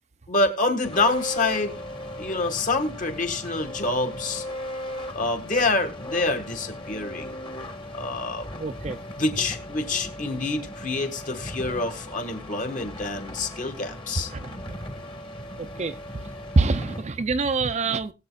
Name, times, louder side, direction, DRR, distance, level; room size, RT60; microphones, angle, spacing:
voice 1, 0.3-1.8 2.2-4.4 5.1-7.4 7.9-8.4 9.2-14.3, left 2 dB, 40° left, 1.8 m, -27 dB
sound 1, 0.8-17.0, left 1 dB, 25° left, 1.5 m, -37 dB
voice 2, 8.6-9.0 14.3-14.8 15.6-16.0 16.6-18.1, right 3 dB, 35° right, 0.5 m, -25 dB
21.0 x 7.7 x 2.3 m
head